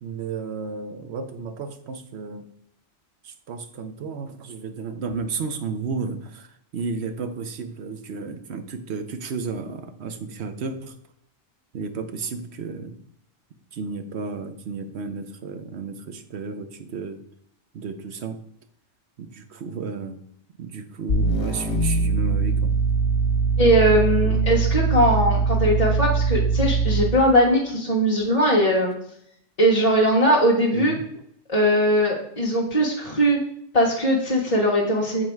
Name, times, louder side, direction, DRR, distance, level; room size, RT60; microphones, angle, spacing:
voice 1, 0.0-2.4 3.2-6.5 6.7-10.9 11.7-13.0 13.7-17.2 17.7-18.4 19.2-20.2 20.6-22.7 24.2-24.4 30.7-31.0, right 4 dB, 70° right, 8 dB, 1.0 m, -33 dB
sound 1, 21.1-27.3, right 4 dB, 70° left, 1.4 m, -22 dB
voice 2, 23.6-28.9 29.6-30.9 31.5-33.4 33.7-35.2, equal, 35° left, -4 dB, 1.3 m, -20 dB
7.5 x 4.0 x 4.6 m, 0.71 s
omnidirectional pair, 1.2 m